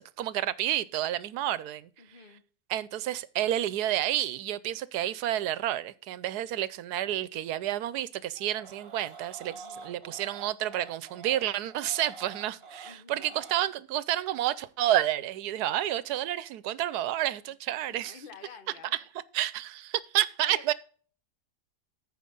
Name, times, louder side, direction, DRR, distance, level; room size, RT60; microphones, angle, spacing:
voice 1, 0.0-1.9 2.7-18.2 18.9-19.0 19.3-20.7, right 13 dB, 80° right, 1.2 m, -30 dB
voice 2, 2.0-2.4 9.4-9.9 12.8-13.4 17.5-17.6 17.9-19.0 20.4-20.7, left 5 dB, 40° left, 1.1 m, -50 dB
sound 1, 8.4-13.6, right 4 dB, 40° right, 1.3 m, -47 dB
14.5 x 4.9 x 3.8 m
omnidirectional pair, 1.7 m